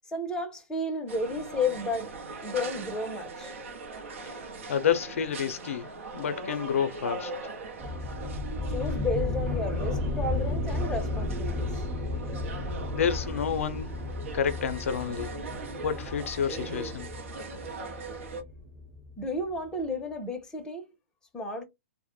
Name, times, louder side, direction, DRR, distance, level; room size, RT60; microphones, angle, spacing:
voice 1, 0.1-2.2 2.4-3.5 8.7-11.7 19.2-20.8 21.3-21.6, left 2 dB, 10° left, 0.7 m, -32 dB
sound 1, 1.1-18.4, right 3 dB, 65° right, 0.7 m, -41 dB
voice 2, 4.7-7.3 12.9-13.9 14.3-15.3 15.8-17.1, left 7 dB, 70° left, 0.5 m, -29 dB
sound 2, 7.8-19.2, left 2 dB, 25° right, 0.9 m, -33 dB
2.1 x 2.0 x 3.0 m
hypercardioid pair, 125°, 8 cm